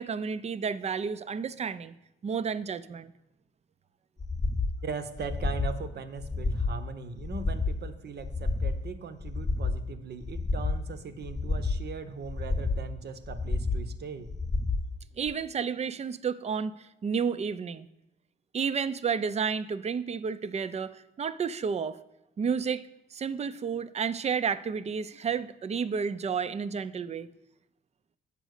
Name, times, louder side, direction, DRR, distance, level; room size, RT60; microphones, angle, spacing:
voice 1, 0.0-1.9 2.2-3.1 15.2-17.9 18.5-22.0 22.4-27.3, right 6 dB, 35° right, 15 dB, 0.5 m, -31 dB
sound 1, 4.2-4.7 5.2-5.8 6.2-6.8 7.2-7.8 8.2-8.8 9.2-9.8 10.2-10.8 11.2-11.8 12.2-12.8 13.2-13.8 14.3-14.8 15.3-15.4, left 3 dB, 20° left, 0.7 m, -30 dB
voice 2, 4.8-14.3, right 5 dB, 55° right, 10 dB, 0.9 m, -39 dB
7.6 x 5.2 x 6.5 m, 0.88 s
cardioid pair, 90°, 20 cm